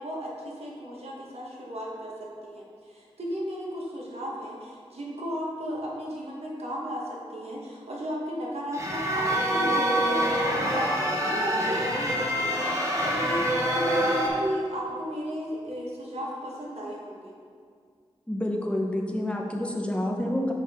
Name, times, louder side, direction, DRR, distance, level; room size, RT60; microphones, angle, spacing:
voice 1, 0.0-2.1 2.4-7.0 7.3-12.1 12.4-17.3, equal, 70° right, -3 dB, 1.5 m, -34 dB
sound 1, 8.7-14.3, equal, 30° right, 1.4 m, -26 dB
voice 2, 18.3-20.5, left 1 dB, 10° left, 0 dB, 1.1 m, -28 dB
7.6 x 5.3 x 3.7 m, 2.1 s
cardioid pair, 45°, 11 cm